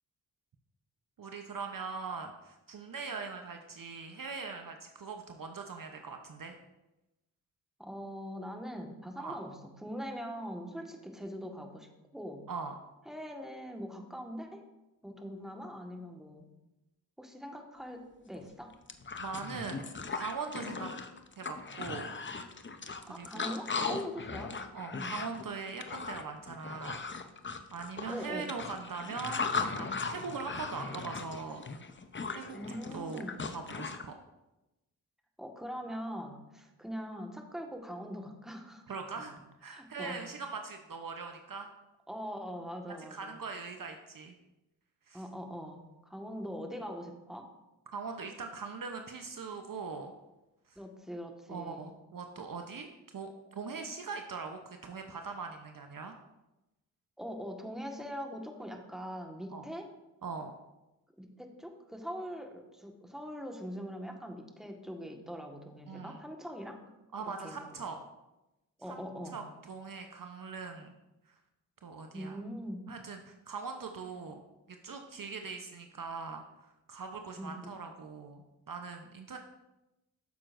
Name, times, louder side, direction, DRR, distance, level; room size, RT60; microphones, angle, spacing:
voice 1, 1.2-6.6 9.2-9.4 12.5-12.7 19.2-19.8 20.1-20.9 21.4-22.1 23.0-23.5 24.7-27.0 27.7-31.6 32.3-34.1 38.9-39.3 39.6-41.7 43.1-44.3 45.1-45.2 47.9-50.1 50.7-50.8 51.5-52.9 53.1-56.1 59.5-59.7 60.2-60.5 65.9-66.2 67.1-68.0 68.9-69.0 69.3-71.0 71.3-71.4 71.8-72.4 72.9-74.4 74.8-76.4 76.9-79.4, right 5 dB, 45° right, 5 dB, 0.9 m, -41 dB
voice 2, 7.8-12.4 13.0-14.6 15.0-16.5 17.2-18.7 23.1-24.5 24.9-25.1 28.1-28.5 32.5-33.4 35.4-39.1 39.7-40.2 42.1-43.4 45.1-47.5 50.7-51.9 57.2-59.9 61.2-66.8 67.2-67.9 68.8-69.4 72.1-72.8 77.4-77.5, equal, ahead, 2 dB, 1.5 m, -42 dB
sound 1, 18.3-18.4 18.7-34.0, left 4 dB, 25° left, 0.8 m, -38 dB
9.1 x 7.4 x 2.6 m, 0.97 s
supercardioid pair, 45°, 45 cm